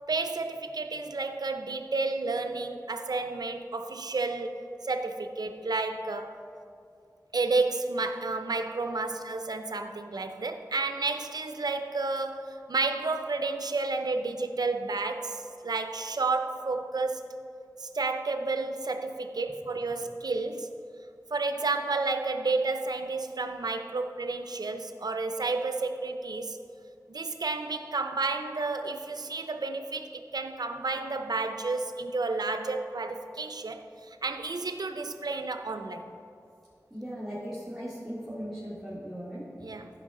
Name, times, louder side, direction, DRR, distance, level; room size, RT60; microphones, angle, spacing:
voice 1, 0.1-6.4 7.3-17.3 17.8-20.7 21.3-26.6 27.1-36.1 39.6-39.9, right 3 dB, 85° right, 7 dB, 0.6 m, -31 dB
voice 2, 36.9-39.5, equal, ahead, -9 dB, 2.2 m, -38 dB
14.5 x 5.4 x 3.8 m, 2.5 s
wide cardioid pair, 45°, 7 cm